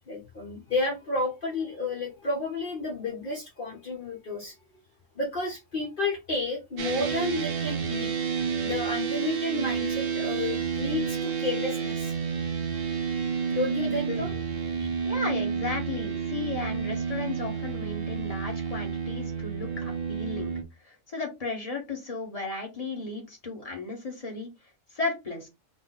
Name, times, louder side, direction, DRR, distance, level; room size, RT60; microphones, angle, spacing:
voice 1, 0.1-4.5 5.2-12.1 13.5-14.4 14.8-14.9, left 2 dB, 45° left, 1.0 m, -31 dB
sound 1, 6.8-20.6, right 6 dB, 50° right, 0.8 m, -30 dB
voice 2, 13.8-14.3 15.0-20.5 20.8-24.5 24.9-25.5, left 3 dB, 30° left, 1.2 m, -35 dB
4.0 x 2.2 x 3.9 m
omnidirectional pair, 1.4 m